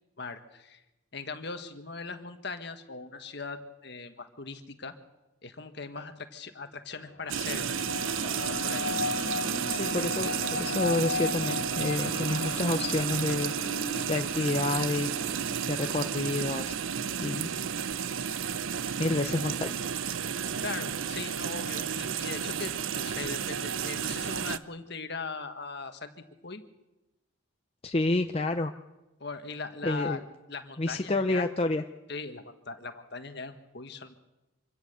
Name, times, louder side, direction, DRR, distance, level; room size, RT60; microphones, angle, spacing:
voice 1, 0.2-0.8 1.1-4.9 5.4-7.9 8.2-8.9 20.6-26.6 29.2-30.2 30.5-31.4 32.1-34.2, left 4 dB, 55° left, 8 dB, 1.5 m, -40 dB
sound 1, 6.9-17.1, left 3 dB, 75° left, 1.7 m, -37 dB
sound 2, 7.3-24.6, right 7 dB, 75° right, 0.6 m, -32 dB
voice 2, 9.7-13.5 14.1-15.3 15.7-16.8 17.2-17.5 19.0-19.7 27.8-28.7 29.8-30.2 30.8-31.8, left 2 dB, 30° left, 6 dB, 0.6 m, -29 dB
25.5 x 16.5 x 6.8 m, 1.0 s
head